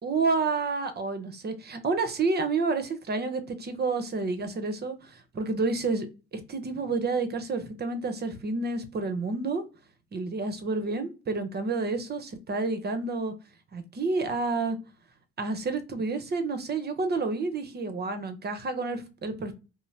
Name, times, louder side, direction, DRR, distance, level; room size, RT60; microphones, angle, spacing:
voice 1, 0.0-9.6 10.1-13.3 13.7-14.8 15.4-19.5, right 3 dB, 30° right, 9 dB, 0.8 m, -29 dB
2.6 x 2.0 x 3.2 m, 0.31 s
supercardioid pair, 75°, 32 cm